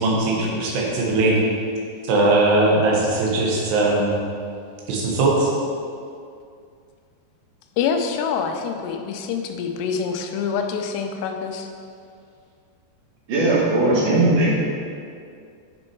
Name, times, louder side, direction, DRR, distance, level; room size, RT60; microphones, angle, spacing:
voice 1, 0.0-1.4 2.0-4.1 4.9-5.5, right 2 dB, 80° right, -3 dB, 3.5 m, -19 dB
voice 2, 7.8-11.7, left 6 dB, 90° left, 5 dB, 2.8 m, -26 dB
voice 3, 13.3-14.5, right 2 dB, 60° right, -6 dB, 3.1 m, -18 dB
8.8 x 6.3 x 4.5 m, 2.3 s
omnidirectional pair, 4.7 m